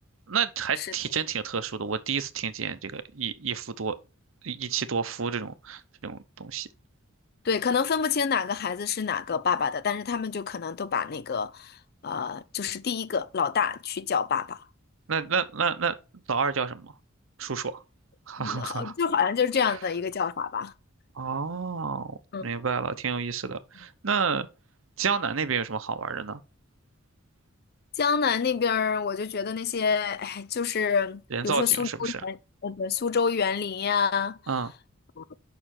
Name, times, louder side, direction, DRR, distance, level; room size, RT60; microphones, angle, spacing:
voice 1, 0.3-4.0 4.4-6.7 15.1-15.9 16.3-16.9 17.4-17.8 18.3-18.9 21.2-24.5 25.0-26.4 31.3-32.2 34.5-34.7, right 6 dB, 70° right, 0.8 m, -30 dB
voice 2, 7.4-11.8 12.0-14.6 18.4-20.7 22.3-22.5 28.0-32.4 32.6-34.4 35.2-35.3, left 6 dB, 50° left, 0.5 m, -27 dB
6.8 x 5.7 x 4.3 m
head